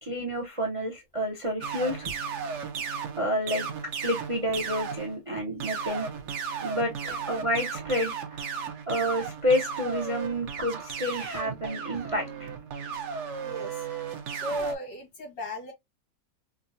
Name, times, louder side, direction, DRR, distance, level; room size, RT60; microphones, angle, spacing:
voice 1, 0.0-2.1 3.2-3.7 4.0-6.1 6.6-6.9 7.3-8.4 8.9-12.5, equal, 35° right, 0.5 m, -29 dB
sound 1, 1.6-5.2 5.6-14.7, right 6 dB, 55° right, 0.8 m, -35 dB
voice 2, 13.4-13.9 14.3-15.7, equal, 80° left, 2.6 m, -36 dB
5.1 x 2.2 x 2.6 m
omnidirectional pair, 1.9 m